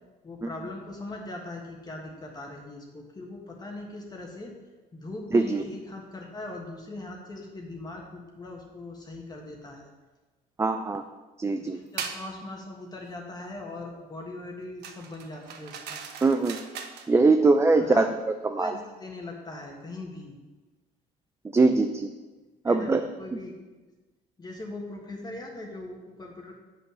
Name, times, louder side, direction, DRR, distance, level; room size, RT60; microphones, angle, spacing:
voice 1, 0.2-4.5 4.9-9.9 11.6-16.0 17.7-18.1 18.4-20.3 22.6-23.5 24.4-26.6, left 2 dB, 25° left, 0 dB, 1.4 m, -40 dB
voice 2, 5.3-5.6 10.6-11.0 11.4-11.8 16.2-16.6 17.1-18.1 18.4-18.7 21.5-22.1 22.6-23.0, right 3 dB, 15° right, 7 dB, 0.4 m, -22 dB
sound 1, 12.0-12.3 14.8-17.1, right 7 dB, 80° right, 1.0 m, -38 dB
7.5 x 5.7 x 6.2 m, 1.2 s
cardioid pair, 110°, 17 cm